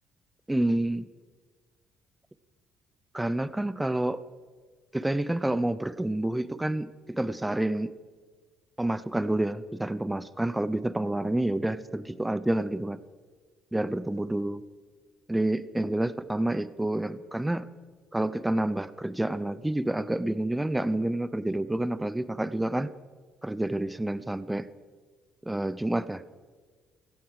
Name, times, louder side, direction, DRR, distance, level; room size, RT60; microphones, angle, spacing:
voice 1, 0.5-1.1 3.1-4.2 4.9-7.9 8.8-13.0 13.7-14.6 15.3-17.7 18.1-22.9 23.4-24.7 25.4-26.2, right 1 dB, 5° right, 15 dB, 0.6 m, -28 dB
17.0 x 14.0 x 4.9 m, 1.4 s
cardioid pair, 125°, 0 cm